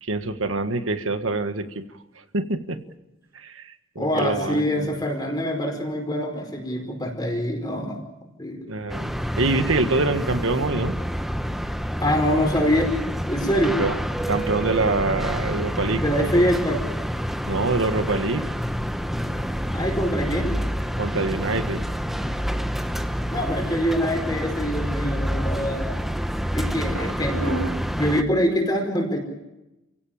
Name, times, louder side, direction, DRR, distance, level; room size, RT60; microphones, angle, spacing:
voice 1, 0.0-1.8 2.3-2.8 3.3-5.0 8.7-10.9 13.8-14.0 14.3-16.0 17.5-18.4 21.0-21.9 26.9-27.0 27.3-27.7, right 3 dB, 90° right, 8 dB, 1.6 m, -25 dB
voice 2, 4.0-8.0 8.4-8.7 12.0-12.9 13.3-13.8 16.0-16.8 19.7-20.6 23.3-25.9 26.5-27.7 27.9-29.2, equal, 20° left, 3 dB, 4.7 m, -24 dB
sound 1, 8.9-28.2, equal, ahead, 0.9 m, -28 dB
29.0 x 17.0 x 8.8 m, 0.97 s
head